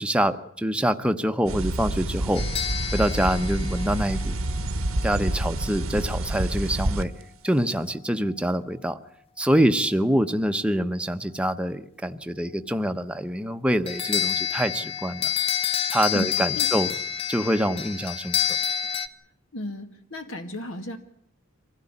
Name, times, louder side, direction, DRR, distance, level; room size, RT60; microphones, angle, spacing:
voice 1, 0.0-2.4 2.9-4.4 5.0-7.1 7.4-9.0 9.4-15.3 15.9-16.9 17.3-18.4, equal, 5° right, 8 dB, 0.9 m, -25 dB
sound 1, 1.5-7.0, right 1 dB, 85° right, 1.3 m, -28 dB
sound 2, 2.3-4.6 13.9-19.1, left 9 dB, 30° left, 0.9 m, -28 dB
voice 2, 16.1-16.7 19.5-21.0, left 1 dB, 70° left, 7 dB, 2.0 m, -34 dB
24.0 x 16.0 x 9.9 m, 0.68 s
head